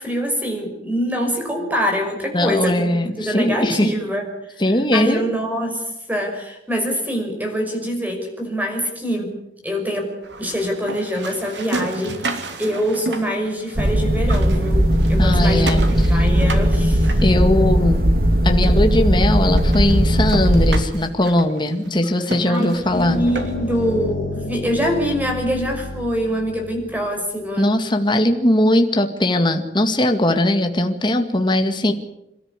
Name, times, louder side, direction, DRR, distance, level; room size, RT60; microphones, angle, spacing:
voice 1, 0.0-9.3 9.6-15.8 16.1-17.1 22.4-27.7, equal, 10° right, 2 dB, 5.9 m, -24 dB
voice 2, 2.3-3.9 4.6-5.2 15.2-15.8 17.2-18.0 18.4-23.2 27.6-31.9, left 1 dB, 25° left, 5 dB, 2.0 m, -19 dB
sound 1, 10.2-13.9 14.2-17.9 18.6-18.7 19.1-19.2 19.5-23.8, right 2 dB, 90° right, 3.3 m, -32 dB
sound 2, 13.8-20.8, equal, 55° right, 2.3 m, -17 dB
sound 3, 22.8-27.1, left 2 dB, 50° left, 4.2 m, -31 dB
27.5 x 13.5 x 9.9 m, 0.83 s
head